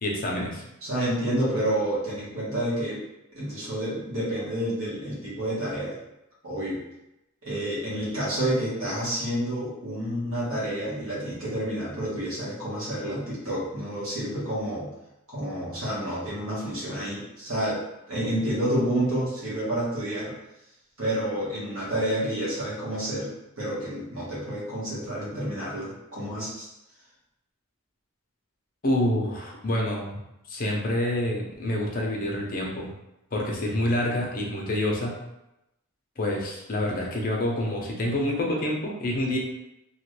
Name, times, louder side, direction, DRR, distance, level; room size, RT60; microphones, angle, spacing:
voice 1, 0.0-0.6 28.8-30.2 30.5-32.9 33.3-35.1 36.2-39.4, left 1 dB, 40° left, -1 dB, 0.6 m, -27 dB
voice 2, 0.8-3.0 3.3-5.9 6.4-6.8 7.4-14.9 15.3-17.8 18.1-20.3 21.0-23.3 23.6-26.7, right 1 dB, 65° right, -8 dB, 1.3 m, -29 dB
2.9 x 2.5 x 3.0 m, 0.89 s
head